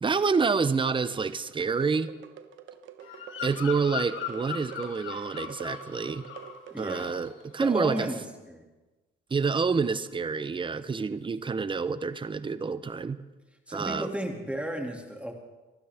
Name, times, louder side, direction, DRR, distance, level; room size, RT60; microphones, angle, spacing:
voice 1, 0.0-2.1 3.4-6.2 6.8-8.1 9.3-13.2 13.7-14.1, right 5 dB, 25° right, 14 dB, 0.8 m, -28 dB
sound 1, 1.5-7.6, right 8 dB, 75° right, 1.1 m, -46 dB
Bird vocalization bird call bird song, 3.0-6.6 6.8-7.2, left 7 dB, 80° left, 2.1 m, -38 dB
voice 2, 6.7-7.2 7.6-8.6 13.7-15.3, right 1 dB, 5° right, 2 dB, 2.5 m, -33 dB
24.5 x 12.5 x 3.6 m, 1.2 s
cardioid pair, 90°, 20 cm